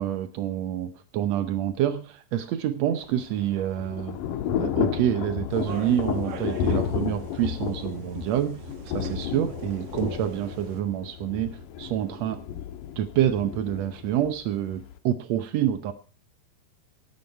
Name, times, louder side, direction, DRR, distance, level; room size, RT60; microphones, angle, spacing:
voice 1, 0.0-4.2 4.6-8.6 8.8-11.5 11.8-12.4 13.0-15.9, right 11 dB, 85° right, 10 dB, 1.5 m, -27 dB
Thunder / Rain, 3.1-15.0, left 9 dB, 75° left, 2.4 m, -32 dB
sound 1, 5.5-10.8, right 5 dB, 55° right, 1.8 m, -44 dB
18.0 x 9.7 x 4.5 m, 0.36 s
omnidirectional pair, 4.2 m